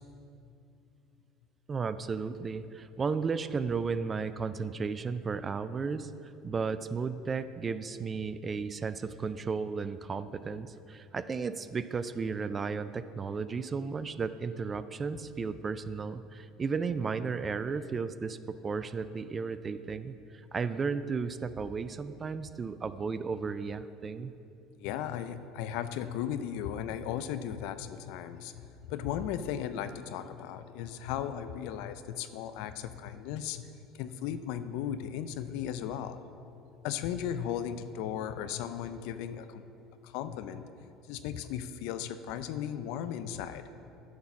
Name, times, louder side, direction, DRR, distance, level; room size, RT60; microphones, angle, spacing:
voice 1, 1.7-24.3, right 5 dB, 30° right, 13 dB, 0.3 m, -34 dB
voice 2, 24.8-33.7 34.0-36.2 36.8-39.6 40.0-40.6 41.1-43.6, left 9 dB, 75° left, 11 dB, 0.4 m, -36 dB
9.5 x 4.1 x 5.8 m, 2.6 s
supercardioid pair, 85°, 0 cm